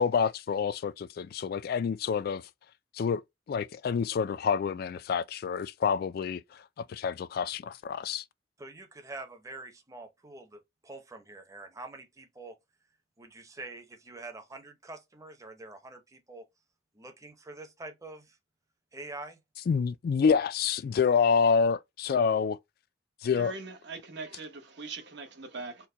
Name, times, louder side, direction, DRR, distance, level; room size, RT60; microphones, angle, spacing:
voice 1, 0.0-2.4 2.9-3.2 3.5-6.4 6.8-8.2 19.7-22.6 23.2-23.5, left 6 dB, 55° left, 0.3 m, -27 dB
voice 2, 8.6-12.6 13.2-16.5 16.9-18.4 18.9-19.4, right 2 dB, 15° right, 0.7 m, -45 dB
voice 3, 23.3-25.9, right 4 dB, 65° right, 1.1 m, -41 dB
4.4 x 2.2 x 3.8 m
head